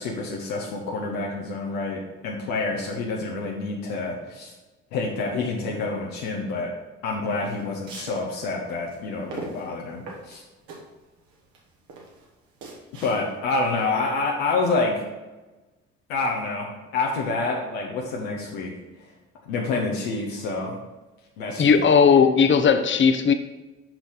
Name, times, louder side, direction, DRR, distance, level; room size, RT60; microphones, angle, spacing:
voice 1, 0.0-4.5 4.9-6.7 7.0-10.4 13.0-15.0 16.1-18.7 19.5-20.8 21.4-22.0, left 3 dB, 80° left, -2 dB, 1.0 m, -28 dB
sound 1, 7.3-13.6, right 3 dB, 70° right, 1.8 m, -41 dB
voice 2, 21.6-23.3, left 6 dB, 35° left, 8 dB, 0.7 m, -17 dB
7.0 x 5.7 x 3.9 m, 1.1 s
hypercardioid pair, 45°, 35 cm